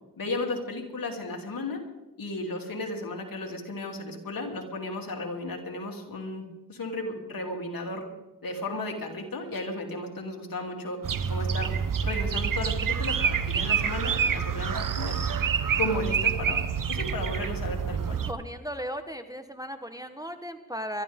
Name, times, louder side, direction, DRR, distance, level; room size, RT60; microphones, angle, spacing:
voice 1, 0.2-1.8 2.2-8.0 8.4-11.0 11.3-15.2 15.8-18.2, left 2 dB, 65° left, 1 dB, 3.3 m, -34 dB
sound 1, 11.0-18.3, right 7 dB, 60° right, 1.0 m, -27 dB
voice 2, 18.3-21.0, equal, 10° right, 8 dB, 1.1 m, -36 dB
23.0 x 13.5 x 3.7 m, 1.0 s
cardioid pair, 65°, 36 cm